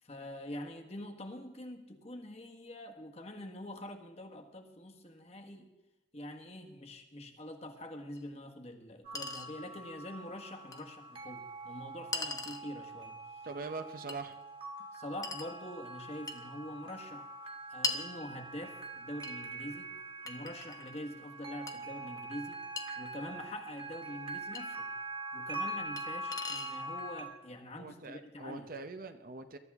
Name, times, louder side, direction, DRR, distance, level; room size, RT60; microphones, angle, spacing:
voice 1, 0.0-5.7 6.1-13.5 14.9-17.3 17.7-19.9 20.2-22.6 23.0-24.9 25.3-28.7, left 1 dB, 35° left, 3 dB, 1.4 m, -45 dB
Chink clink, 8.2-8.3 9.1-9.5 10.7-10.8 12.1-12.7 14.1-14.2 15.2-15.5 16.3-16.5 17.8-18.1 19.2-19.4 20.3-21.0 21.7-21.8 22.8-22.9 24.5-24.6 26.0-26.1 26.3-26.8, left 3 dB, 20° left, 1.0 m, -38 dB
sound 1, 9.0-27.2, right 2 dB, 30° right, 1.7 m, -44 dB
voice 2, 13.4-14.4 27.8-29.6, right 3 dB, 50° right, 9 dB, 0.8 m, -43 dB
22.0 x 12.5 x 3.6 m, 0.99 s
head